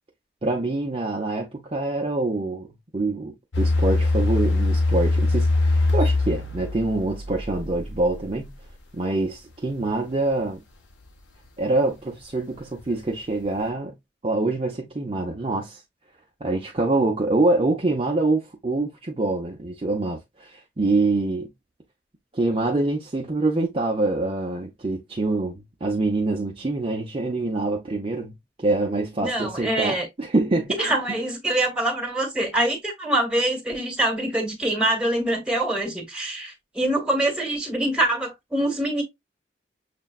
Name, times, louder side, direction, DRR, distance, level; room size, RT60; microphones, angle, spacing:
voice 1, 0.4-2.7 2.9-8.5 8.9-10.6 11.6-13.9 14.2-15.8 16.4-21.5 22.3-30.8 31.1-31.2, right 2 dB, 30° right, 0.6 m, -25 dB
sound 1, 3.5-8.4 8.7-8.8, left 2 dB, 85° left, 0.7 m, -22 dB
voice 2, 29.2-30.1 30.8-39.0, right 1 dB, 5° right, 1.3 m, -24 dB
6.6 x 2.2 x 2.3 m
head